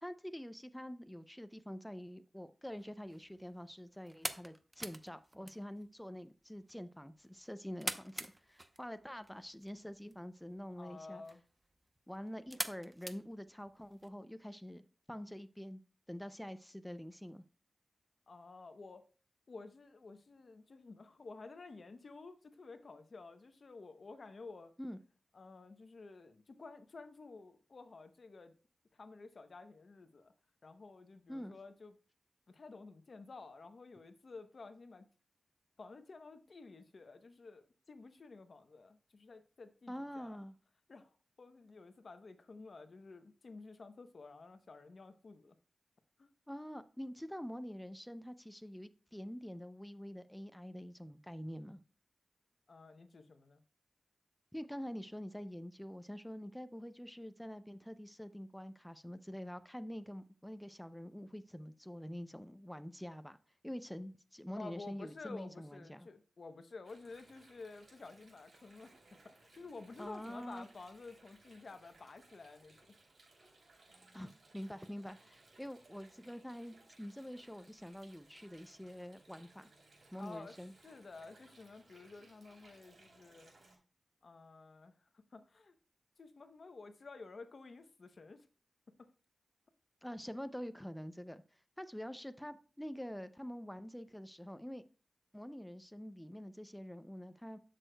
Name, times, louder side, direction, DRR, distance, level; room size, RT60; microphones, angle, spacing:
voice 1, 0.0-11.2 12.1-15.8 16.1-17.4 24.8-25.0 31.3-31.5 39.9-40.5 46.5-51.8 54.5-63.4 63.6-66.1 70.0-70.7 74.1-79.7 80.1-80.7 90.0-94.8 95.3-97.6, equal, 5° left, 0.5 m, -46 dB
sound 1, 2.7-14.1, right 1 dB, 25° right, 0.8 m, -47 dB
voice 2, 10.8-11.4 18.3-19.0 19.5-24.7 25.3-28.5 28.9-30.3 30.6-32.0 32.5-35.1 35.8-40.4 40.9-45.6 46.2-46.3 52.7-53.6 64.6-69.0 69.2-72.9 73.4-73.5 80.2-80.5 80.8-83.5 84.2-85.7 86.2-88.5 89.0-89.1, left 3 dB, 65° left, 0.8 m, -52 dB
Water, 66.8-83.8, right 2 dB, 70° right, 3.2 m, -64 dB
12.0 x 6.3 x 2.2 m
cardioid pair, 55°, 0 cm